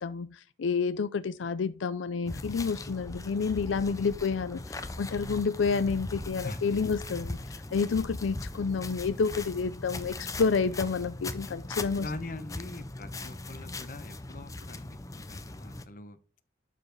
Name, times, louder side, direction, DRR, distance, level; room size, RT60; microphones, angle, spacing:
voice 1, 0.0-7.4 7.7-12.1, left 5 dB, 85° left, 0.4 m, -29 dB
sound 1, 2.3-15.9, left 2 dB, 20° left, 0.5 m, -40 dB
sound 2, 3.1-7.7 7.9-8.7 8.9-9.6 10.0-10.6, left 2 dB, 70° left, 1.1 m, -46 dB
voice 2, 12.0-16.2, left 2 dB, 45° left, 0.8 m, -42 dB
11.5 x 5.0 x 3.9 m
head